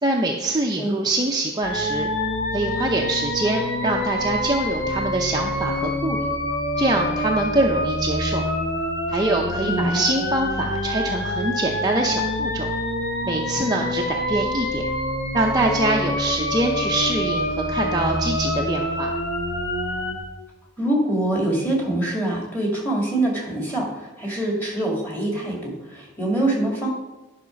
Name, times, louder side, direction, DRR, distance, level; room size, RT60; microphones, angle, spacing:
voice 1, 0.0-2.1 2.5-6.3 6.8-8.5 9.1-12.7 13.2-14.9 15.3-19.1, right 2 dB, 20° right, -1 dB, 0.7 m, -24 dB
sound 1, 1.6-20.2, left 1 dB, 55° left, 1.5 m, -26 dB
voice 2, 9.6-10.1 20.8-26.9, right 1 dB, 10° left, -1 dB, 2.2 m, -24 dB
11.0 x 5.9 x 5.2 m, 1.1 s
head